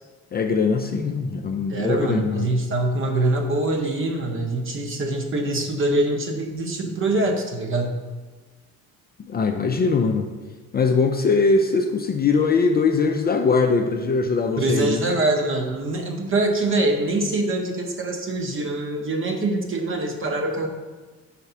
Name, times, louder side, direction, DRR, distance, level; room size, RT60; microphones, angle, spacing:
voice 1, 0.3-2.5 9.2-10.3 10.7-15.0, left 4 dB, 30° left, 4 dB, 0.4 m, -21 dB
voice 2, 1.7-8.0 14.6-20.7, right 2 dB, 40° right, 4 dB, 0.9 m, -24 dB
4.7 x 4.2 x 5.5 m, 1.3 s
cardioid pair, 120°, 32 cm